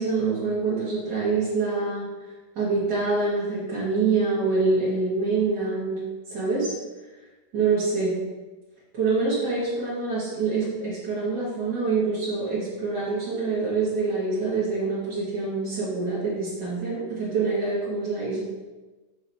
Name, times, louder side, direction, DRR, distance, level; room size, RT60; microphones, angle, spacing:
voice 1, 0.0-2.1 2.6-6.7 7.5-8.1 8.9-18.4, right 4 dB, 80° right, -10 dB, 2.6 m, -25 dB
6.5 x 6.1 x 4.1 m, 1.2 s
omnidirectional pair, 1.9 m